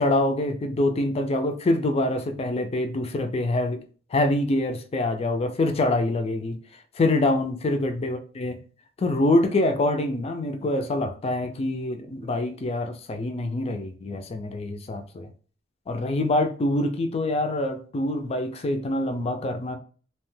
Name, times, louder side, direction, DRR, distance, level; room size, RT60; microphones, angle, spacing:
voice 1, 0.0-3.8 4.1-6.6 7.0-8.6 9.0-15.3 15.9-19.8, left 2 dB, 30° left, 0.3 m, -25 dB
2.8 x 2.1 x 3.1 m
head